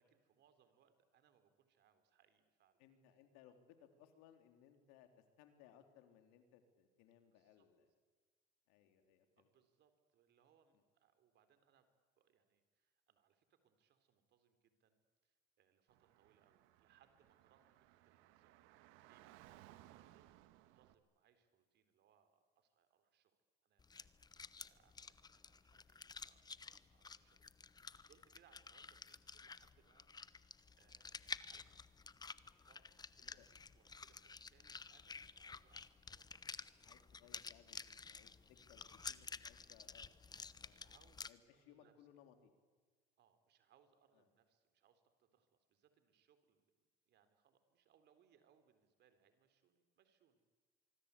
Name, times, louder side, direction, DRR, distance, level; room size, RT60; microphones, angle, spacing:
voice 1, 0.0-2.8 7.3-7.7 9.4-11.9 12.2-18.6 19.0-20.3 20.6-23.3 23.6-31.7 32.7-33.4 33.7-37.3 38.6-39.2 40.6-41.3 41.5-41.9 43.2-50.6, right 8 dB, 55° right, 10 dB, 3.8 m, -75 dB
voice 2, 2.8-7.9 8.7-9.5 10.7-10.8 33.2-33.5 36.8-40.8 41.3-42.5 44.1-44.3, left 9 dB, 75° left, 7 dB, 3.5 m, -66 dB
Car / Traffic noise roadway noise, 15.9-20.9, right 15 dB, 70° right, 1.6 m, -64 dB
sound 1, 23.8-41.3, left 4 dB, 20° left, 1.0 m, -52 dB
25.5 x 23.5 x 8.5 m, 1.5 s
supercardioid pair, 95°, 21 cm